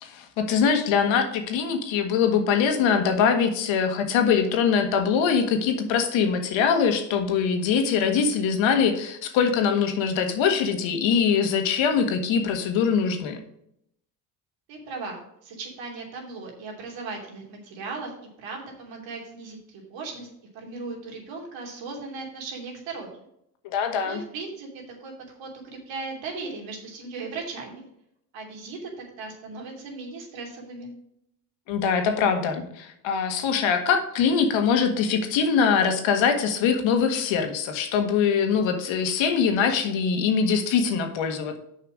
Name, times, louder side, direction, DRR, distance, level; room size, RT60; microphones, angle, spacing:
voice 1, 0.0-13.4 23.6-24.2 31.7-41.6, left 6 dB, 75° left, 5 dB, 1.8 m, -23 dB
voice 2, 14.7-18.1 18.4-23.1 24.0-25.1 25.4-27.8 28.3-30.9, right 3 dB, 75° right, 0 dB, 3.1 m, -37 dB
6.7 x 5.7 x 6.2 m, 0.75 s
supercardioid pair, 80°, 46 cm